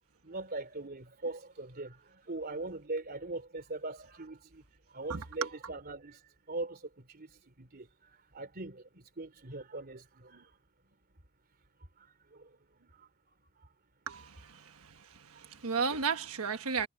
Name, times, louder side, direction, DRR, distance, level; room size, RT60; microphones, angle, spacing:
voice 1, 0.2-10.6 10.8-11.0 12.0-13.1 13.6-13.7 14.2-14.9 15.3-15.5, right 2 dB, 45° right, 3.4 m, -42 dB
voice 2, 14.1-16.9, right 5 dB, 90° right, 1.3 m, -34 dB
head